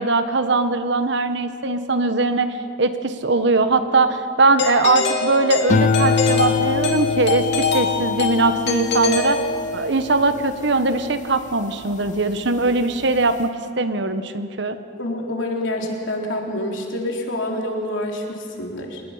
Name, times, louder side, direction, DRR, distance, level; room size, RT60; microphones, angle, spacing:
voice 1, 0.0-9.4 9.7-14.8, right 3 dB, 65° right, 9 dB, 1.2 m, -20 dB
Doorbell, 4.6-10.0, left 4 dB, 60° left, 2.7 m, -24 dB
sound 1, 5.7-12.2 12.7-13.2, left 5 dB, 40° left, 0.6 m, -25 dB
voice 2, 15.0-19.0, left 1 dB, 85° left, 1 dB, 3.4 m, -27 dB
27.0 x 20.0 x 5.8 m, 2.4 s
head